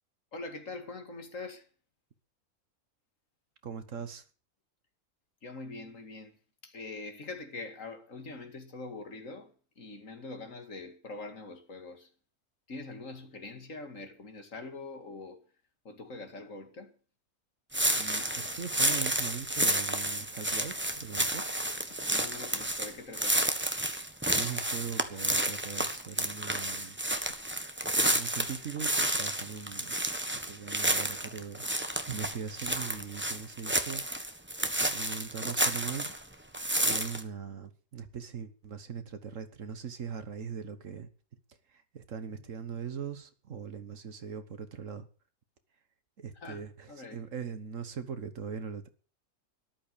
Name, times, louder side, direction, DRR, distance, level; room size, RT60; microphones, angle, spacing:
voice 1, 0.3-1.7 5.4-6.4 6.6-12.1 12.7-15.4 15.8-16.9 21.9-23.4 46.4-47.2, left 3 dB, 60° left, 2.5 m, -43 dB
voice 2, 3.6-4.2 17.9-21.5 24.3-27.0 27.9-30.0 30.3-34.1 34.9-36.2 36.8-41.1 41.7-45.1 46.2-48.9, right 7 dB, 60° right, 1.6 m, -40 dB
sound 1, 17.7-36.2 36.5-37.2, right 1 dB, 10° right, 1.2 m, -30 dB
13.5 x 11.5 x 6.8 m
omnidirectional pair, 1.5 m